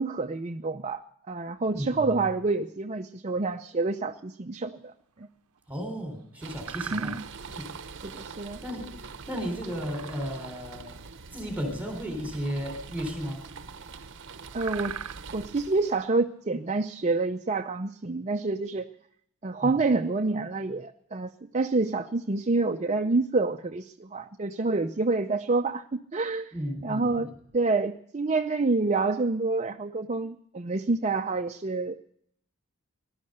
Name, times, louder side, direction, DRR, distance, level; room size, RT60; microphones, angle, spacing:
voice 1, 0.0-4.9 5.2-5.3 6.9-7.2 8.0-8.6 14.5-15.0 15.3-18.9 19.4-26.5 26.8-27.3 27.5-32.0, right 3 dB, 30° right, 5 dB, 0.6 m, -28 dB
voice 2, 1.7-2.1 5.7-7.2 7.5-7.7 8.6-9.0 9.3-10.9 11.3-13.4 19.6-19.8 26.5-27.3, equal, 5° right, 4 dB, 3.5 m, -34 dB
sound 1, 5.0-5.6 6.0-6.2 6.6-7.7 9.5-10.6 10.9-11.0 11.4-11.6 12.5-13.7 13.9-14.0 14.3-17.2, right 9 dB, 90° right, 0.7 m, -40 dB
sound 2, 6.4-16.1, right 5 dB, 55° right, 0.8 m, -44 dB
18.5 x 12.0 x 6.5 m, 0.68 s
head